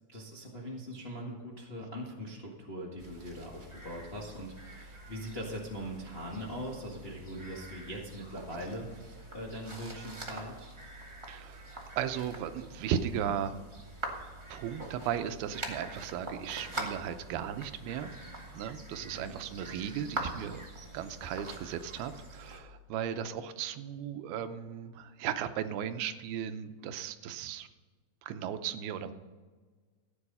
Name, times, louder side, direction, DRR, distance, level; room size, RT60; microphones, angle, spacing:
voice 1, 0.1-10.7 19.1-19.4, equal, 35° left, -3 dB, 0.9 m, -41 dB
sound 1, 3.0-22.6, right 1 dB, 30° right, 0.5 m, -44 dB
voice 2, 11.3-13.5 14.5-18.2 18.5-20.6 20.9-27.7 28.2-29.1, right 9 dB, 85° right, 10 dB, 2.7 m, -36 dB
14.5 x 9.6 x 5.5 m, 1.4 s
omnidirectional pair, 4.3 m